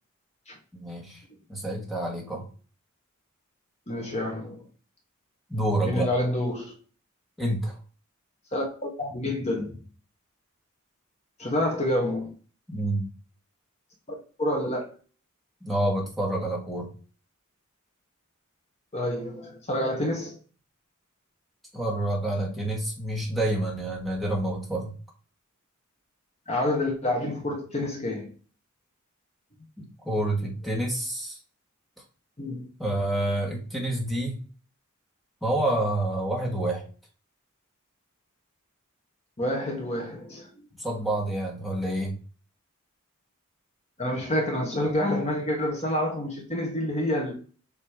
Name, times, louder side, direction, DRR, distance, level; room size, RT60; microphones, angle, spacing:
voice 1, 0.7-1.2 1.5-2.5 5.5-6.1 7.4-7.8 12.7-13.1 15.6-16.9 21.7-24.9 30.0-31.4 32.8-34.4 35.4-36.9 40.8-42.1, right 1 dB, ahead, 1.8 m, -28 dB
voice 2, 3.9-4.6 5.8-6.7 8.5-9.7 11.4-12.3 14.4-14.9 18.9-20.4 26.5-28.3 32.4-32.7 39.4-40.7 44.0-47.3, left 1 dB, 30° left, 1.5 m, -28 dB
7.3 x 3.3 x 5.0 m
head